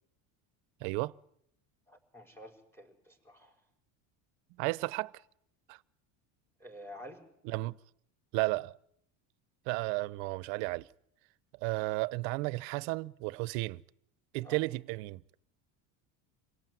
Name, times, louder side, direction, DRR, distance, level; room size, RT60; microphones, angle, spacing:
voice 1, 0.8-1.1 4.6-5.1 5.7-5.8 7.4-7.8 8.3-8.8 9.7-10.9 11.6-13.8 14.3-15.2, right 22 dB, 80° right, 0.9 m, -33 dB
voice 2, 1.9-3.6 6.6-7.3 14.4-14.6, equal, 5° left, 4.9 m, -50 dB
27.0 x 17.5 x 9.3 m
cardioid pair, 130°, 42 cm